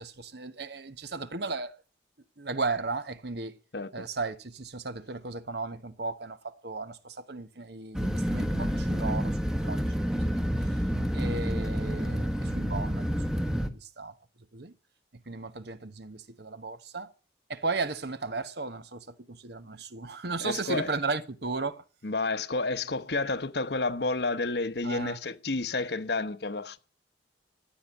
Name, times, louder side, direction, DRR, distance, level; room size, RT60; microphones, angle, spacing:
voice 1, 0.0-1.8 2.4-3.6 3.9-9.4 9.6-10.4 11.1-13.1 13.6-14.2 14.5-14.7 15.3-17.1 17.5-21.8 24.8-25.2, right 3 dB, 55° right, 1.1 m, -35 dB
voice 2, 3.7-4.1 20.4-20.9 22.0-26.8, left 3 dB, 60° left, 1.1 m, -30 dB
sound 1, 7.9-13.7, equal, 5° right, 1.1 m, -29 dB
14.5 x 9.2 x 8.4 m
head